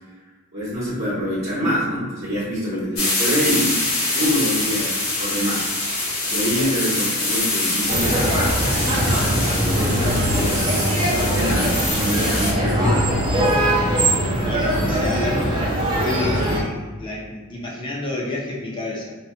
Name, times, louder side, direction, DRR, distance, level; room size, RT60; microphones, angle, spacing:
voice 1, 0.5-3.9 4.1-4.9 5.2-13.0 14.7-15.4, equal, 45° right, -9 dB, 1.0 m, -26 dB
sound 1, 3.0-12.5, left 2 dB, 75° left, 1.2 m, -24 dB
sound 2, 7.9-16.6, right 1 dB, 20° right, 0.6 m, -21 dB
voice 2, 14.4-15.5 15.9-19.1, left 2 dB, 20° left, -5 dB, 0.6 m, -30 dB
2.8 x 2.3 x 4.2 m, 1.3 s
head